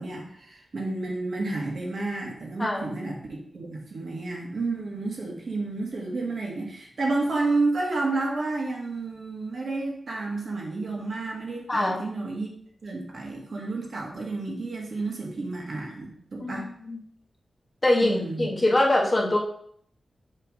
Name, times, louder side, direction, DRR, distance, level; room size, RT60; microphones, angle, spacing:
voice 1, 0.0-12.5 12.8-16.7 18.0-18.5, right 3 dB, 60° right, -1 dB, 1.6 m, -31 dB
voice 2, 2.6-3.0 11.7-12.2 16.4-17.0 17.8-19.4, left 1 dB, 25° left, -2 dB, 1.3 m, -24 dB
6.7 x 3.4 x 5.0 m, 0.64 s
wide cardioid pair, 130°, 0 cm